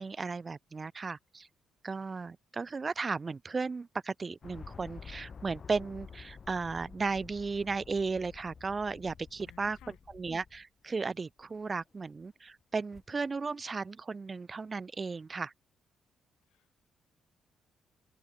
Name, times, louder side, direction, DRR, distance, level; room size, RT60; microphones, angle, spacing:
voice 1, 0.0-1.5 1.8-9.8 10.1-15.5, right 4 dB, 30° right, 0.7 m, -35 dB
sound 1, 4.4-10.6, left 6 dB, 45° left, 0.7 m, -50 dB
voice 2, 9.4-10.0 16.5-16.8, left 14 dB, 85° left, 2.4 m, -58 dB
sound 2, 9.7-13.8, left 3 dB, 25° left, 3.9 m, -67 dB
open air
cardioid pair, 90°, 0 cm